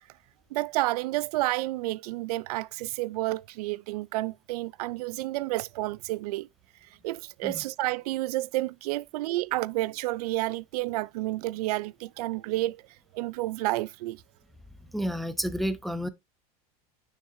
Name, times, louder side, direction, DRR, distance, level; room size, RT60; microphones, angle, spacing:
voice 1, 0.5-6.5 7.0-12.8 13.1-14.2, right 18 dB, 85° right, 0.4 m, -30 dB
voice 2, 14.9-16.1, equal, ahead, 0.3 m, -30 dB
6.6 x 6.4 x 2.6 m
supercardioid pair, 160°, 19 cm